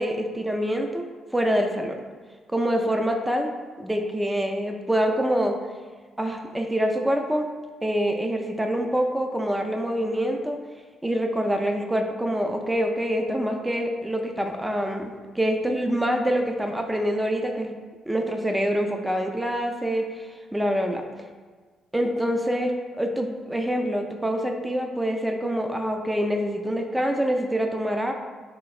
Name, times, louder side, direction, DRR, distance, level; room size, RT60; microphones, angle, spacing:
voice 1, 0.0-2.0 2.5-3.5 3.8-5.6 6.2-7.5 7.8-10.6 11.0-17.7 18.1-21.0 21.9-28.1, equal, 10° right, 3 dB, 0.3 m, -25 dB
3.4 x 3.1 x 2.4 m, 1.4 s
cardioid pair, 90°, 0 cm